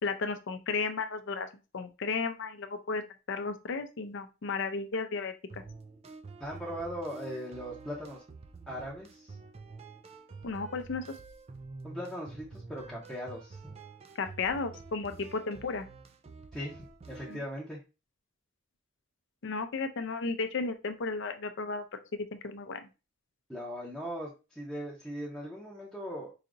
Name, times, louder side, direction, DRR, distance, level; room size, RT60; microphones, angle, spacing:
voice 1, 0.0-1.5 1.7-5.6 10.4-11.0 14.2-15.9 17.3-17.4 19.4-21.8 22.1-22.8, left 4 dB, 60° left, 8 dB, 0.5 m, -34 dB
sound 1, 5.5-17.5, right 4 dB, 30° right, 0.3 m, -48 dB
voice 2, 6.4-8.2 8.7-9.4 11.8-13.7 16.5-17.8 23.5-26.3, equal, ahead, -6 dB, 0.8 m, -39 dB
4.9 x 2.8 x 2.5 m, 0.29 s
head